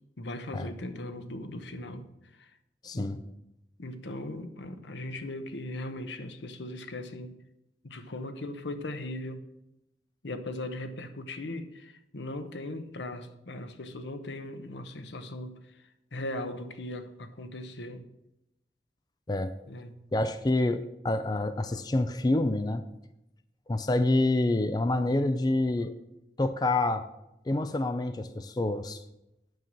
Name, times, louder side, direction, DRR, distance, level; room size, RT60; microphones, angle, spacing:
voice 1, 0.2-2.1 2.4-2.5 2.9-3.1 3.8-7.4 7.8-9.4 10.2-15.6 16.1-18.0 19.7-19.9, left 1 dB, 85° left, 1.0 m, -38 dB
voice 2, 2.8-3.2 19.3-19.5 20.1-22.8 23.7-25.9 26.4-27.1 27.5-29.0, left 2 dB, 25° left, 0.4 m, -27 dB
9.2 x 5.5 x 7.4 m
head